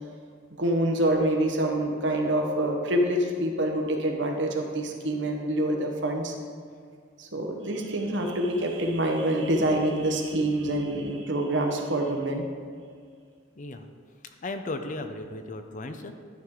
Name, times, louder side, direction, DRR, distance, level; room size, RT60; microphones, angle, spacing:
voice 1, 0.6-6.4 7.2-12.4, right 1 dB, 65° right, 2 dB, 1.0 m, -26 dB
voice 2, 13.6-13.9 14.2-16.1, left 2 dB, 40° left, 7 dB, 0.5 m, -36 dB
11.5 x 4.7 x 3.7 m, 2.1 s
head